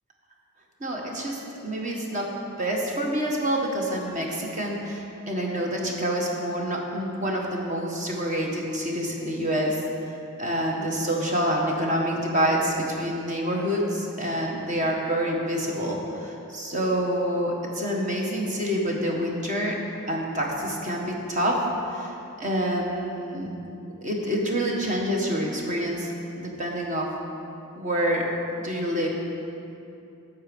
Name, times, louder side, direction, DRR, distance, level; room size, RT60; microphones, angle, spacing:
voice 1, 0.8-2.3 2.6-19.8 20.1-23.5 24.0-27.1 27.8-28.3 28.6-29.2, equal, 35° right, -1 dB, 1.4 m, -27 dB
11.0 x 7.2 x 5.3 m, 2.7 s
head